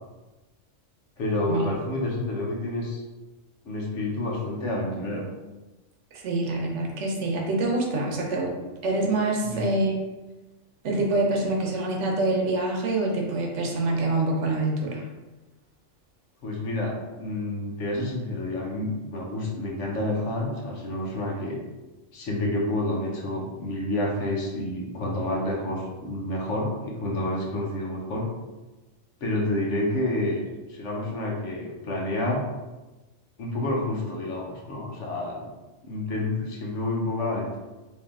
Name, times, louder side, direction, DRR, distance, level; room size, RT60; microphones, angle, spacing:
voice 1, 1.2-3.0 3.6-5.3 9.4-9.6 16.4-21.6 22.1-28.3 29.2-32.4 33.4-35.5 35.8-37.6, left 1 dB, 70° left, -2 dB, 1.2 m, -29 dB
voice 2, 6.1-8.6 8.8-10.0 10.8-15.1, right 2 dB, 70° right, 0 dB, 1.0 m, -26 dB
3.2 x 2.7 x 3.6 m, 1.1 s
omnidirectional pair, 1.3 m